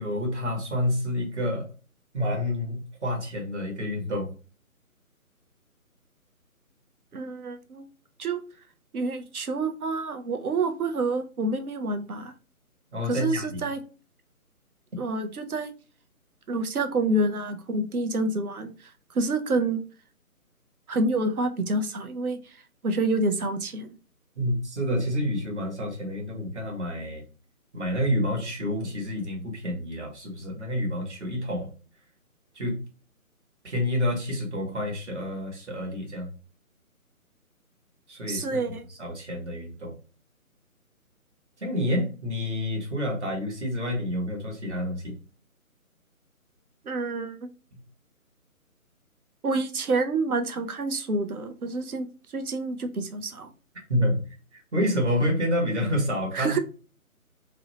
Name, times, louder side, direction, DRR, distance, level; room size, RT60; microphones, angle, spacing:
voice 1, 0.0-1.7 2.1-4.3 12.9-13.6 24.3-27.2 27.7-31.7 32.5-32.8 33.6-36.3 38.1-38.6 39.0-39.9 41.6-45.2 47.7-47.8 53.9-54.2 54.5-56.6, left 1 dB, 50° right, 0 dB, 1.2 m, -28 dB
voice 2, 7.1-7.8 8.2-8.4 8.9-12.3 13.1-13.8 15.0-15.7 16.5-18.7 19.1-19.8 20.9-22.4 22.8-24.0 38.3-38.8 46.8-47.4 49.4-52.1 52.3-53.5 56.3-56.6, right 2 dB, 80° right, 8 dB, 0.6 m, -28 dB
2.6 x 2.1 x 2.7 m, 0.35 s
figure-of-eight pair, 145°, 44 cm